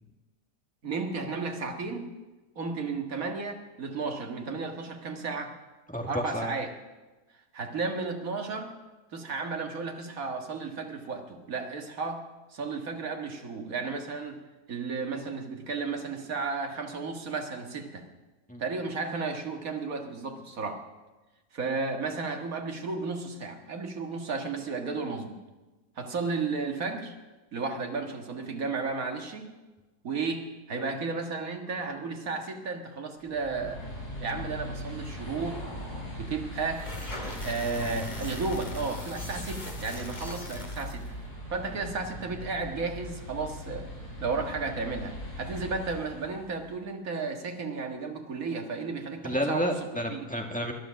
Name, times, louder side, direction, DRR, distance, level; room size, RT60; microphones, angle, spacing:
voice 1, 0.8-2.1 2.6-5.6 6.0-6.7 7.5-8.7 9.1-12.2 12.5-14.4 14.7-18.1 18.6-20.8 21.5-25.4 26.0-27.2 27.5-29.5 30.0-33.8 34.2-35.6 36.2-36.9 37.4-41.1 41.5-43.9 44.2-49.7 50.1-50.3, right 4 dB, 60° right, 4 dB, 2.1 m, -33 dB
voice 2, 5.9-6.5 18.5-18.6 49.2-50.7, equal, 5° left, 2 dB, 1.8 m, -30 dB
sound 1, 33.2-46.7, equal, 70° left, 8.5 m, -40 dB
sound 2, 36.6-41.1, left 1 dB, 25° left, 2.2 m, -41 dB
20.5 x 11.0 x 6.3 m, 1.2 s
omnidirectional pair, 1.7 m